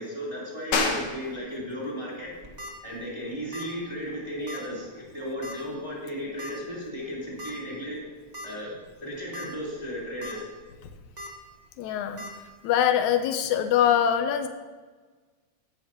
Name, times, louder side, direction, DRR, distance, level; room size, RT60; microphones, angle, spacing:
voice 1, 0.0-2.3 2.8-8.0 8.4-8.7 9.0-10.5, equal, 10° right, -6 dB, 3.3 m, -35 dB
sound 1, 0.7-11.0, left 4 dB, 60° left, 2.2 m, -37 dB
sound 2, 2.3-2.7 3.5-3.8 4.0-4.1 4.5-4.6 5.4-5.7 6.4-6.5 7.4-7.5 8.0-8.1 8.3-8.5 9.1-9.5 9.9-10.3 11.2-11.3 12.2-12.3, equal, 30° right, 0.7 m, -39 dB
voice 2, 11.8-12.2 12.6-14.5, left 9 dB, 85° left, 8 dB, 2.1 m, -23 dB
16.0 x 10.5 x 2.9 m, 1.4 s
omnidirectional pair, 3.4 m